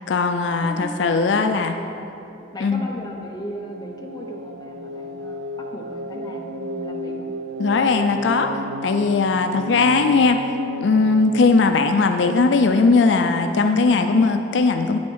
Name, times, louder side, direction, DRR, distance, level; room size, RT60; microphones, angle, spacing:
voice 1, 0.1-1.8 2.6-2.9 7.6-8.5 8.8-10.4 10.8-15.0, left 4 dB, 75° left, 7 dB, 0.4 m, -18 dB
voice 2, 0.6-1.0 1.3-2.1 2.5-7.3 13.4-13.7, equal, 20° left, 0 dB, 0.9 m, -36 dB
sound 1, 2.3-11.7, equal, 70° right, 0.5 m, -33 dB
9.4 x 7.3 x 4.6 m, 2.6 s
head